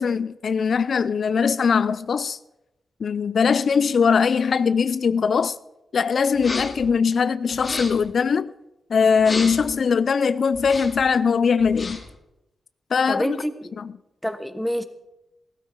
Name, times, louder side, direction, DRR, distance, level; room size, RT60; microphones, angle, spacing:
voice 1, 0.0-2.4 3.0-5.6 5.9-8.5 8.9-12.0 12.9-13.4 13.8-13.9, left 6 dB, 65° left, 0.4 m, -21 dB
sound 1, 6.4-6.9 7.5-8.1 9.2-9.7 10.5-11.1 11.6-12.2, left 2 dB, 40° left, 2.3 m, -33 dB
voice 2, 13.1-13.8 14.2-14.8, equal, ahead, 1.2 m, -27 dB
16.0 x 13.0 x 4.6 m
cardioid pair, 75°, 0 cm